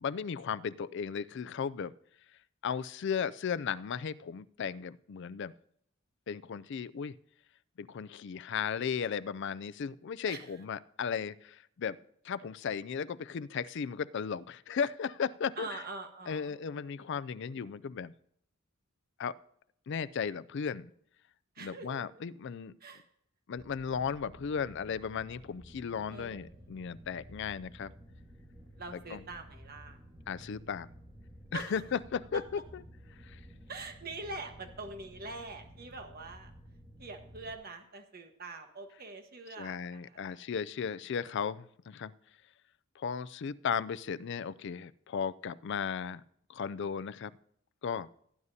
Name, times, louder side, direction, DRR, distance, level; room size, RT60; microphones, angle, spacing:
voice 1, 0.0-1.9 2.6-5.5 6.3-7.1 7.8-12.0 12.2-15.8 16.3-18.1 19.2-19.3 19.9-20.9 21.6-22.7 23.5-27.9 29.1-29.2 30.3-30.9 31.5-32.4 32.7-32.8 33.2-33.4 39.6-42.1 43.0-46.2 46.5-47.3 47.8-48.1, left 6 dB, 55° left, 16 dB, 0.4 m, -35 dB
voice 2, 15.6-16.6 21.5-22.0 22.8-23.0 26.1-26.8 28.8-30.0 31.5-31.8 32.3-32.4 33.7-36.5 37.0-40.5, right 3 dB, 45° right, 5 dB, 1.4 m, -44 dB
sound 1, 23.5-37.5, equal, 20° right, 1.5 m, -53 dB
17.5 x 9.5 x 2.8 m, 0.70 s
head